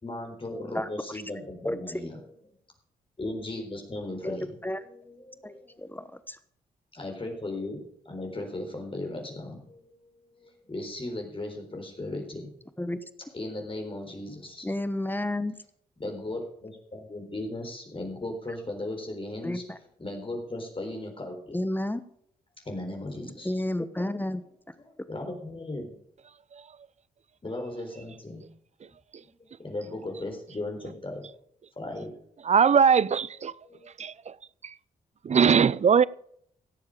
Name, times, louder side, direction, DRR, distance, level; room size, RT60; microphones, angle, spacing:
voice 1, 0.0-2.2 3.2-4.5 4.8-6.0 6.9-12.5 13.3-14.7 16.0-19.6 20.0-21.6 22.6-23.5 24.8-25.9 27.4-28.4 28.8-28.9 29.2-29.3 29.6-31.3 31.8-32.1 33.6-33.9, left 2 dB, 30° left, 4.0 m, -37 dB
voice 2, 4.2-4.8 5.4-6.4 12.8-13.0 14.6-15.6 19.4-19.8 21.5-22.0 23.4-24.4, left 1 dB, 10° left, 1.1 m, -31 dB
voice 3, 32.4-33.5 34.0-34.4 34.6-34.7 35.2-36.0, right 7 dB, 40° right, 0.5 m, -21 dB
17.0 x 7.3 x 5.1 m
hypercardioid pair, 45°, 18 cm